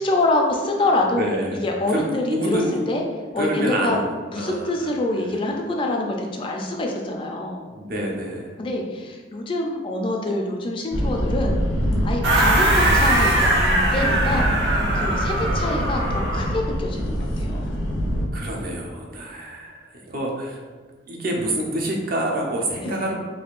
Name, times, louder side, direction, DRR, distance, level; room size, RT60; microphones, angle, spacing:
voice 1, 0.0-1.3 1.6-3.0 3.3-4.0 4.3-7.6 8.6-11.6 12.0-17.7 22.8-23.0, left 2 dB, 30° left, 1 dB, 0.3 m, -26 dB
voice 2, 1.2-1.6 1.9-2.8 3.4-4.0 4.3-4.7 5.1-5.4 7.7-8.5 18.3-20.6 21.1-23.2, right 1 dB, 50° right, -1 dB, 0.6 m, -27 dB
sound 1, 10.9-18.3, equal, 85° left, 0.6 m, -24 dB
sound 2, 12.2-16.6, right 1 dB, 80° right, 0.9 m, -21 dB
3.5 x 3.1 x 2.4 m, 1.4 s
head